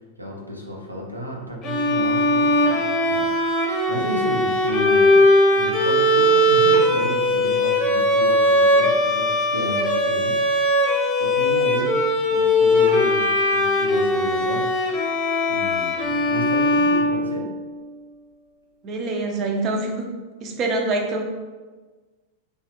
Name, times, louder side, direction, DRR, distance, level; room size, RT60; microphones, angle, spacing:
voice 1, 0.2-2.8 3.0-5.2 5.5-14.7 15.5-17.5, left 1 dB, 85° right, -1 dB, 0.7 m, -32 dB
Bowed string instrument, 1.6-17.7, left 1 dB, 25° left, 0.9 m, -19 dB
voice 2, 18.8-20.1 20.4-21.2, right 2 dB, 35° right, 2 dB, 0.6 m, -25 dB
3.5 x 3.2 x 2.8 m, 1.3 s
figure-of-eight pair, 90°, 0 cm